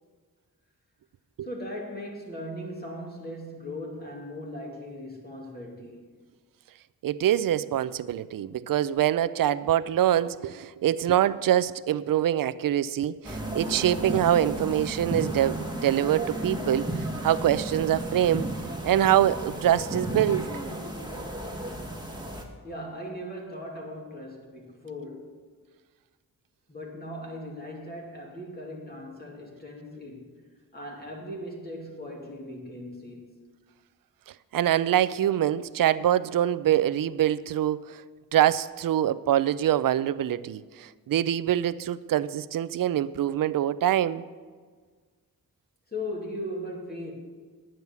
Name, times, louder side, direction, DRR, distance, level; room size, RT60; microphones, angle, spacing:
voice 1, 1.4-6.1 22.6-25.4 26.7-30.4 30.7-33.3 45.9-47.1, left 1 dB, 25° left, 2.5 m, -38 dB
voice 2, 7.0-16.9 17.2-18.5 18.8-20.5 34.5-38.0 38.3-44.2, right 11 dB, 65° right, 0.5 m, -24 dB
sound 1, 13.2-22.4, right 1 dB, 10° right, 1.6 m, -33 dB
9.6 x 8.9 x 7.0 m
wide cardioid pair, 100°, 36 cm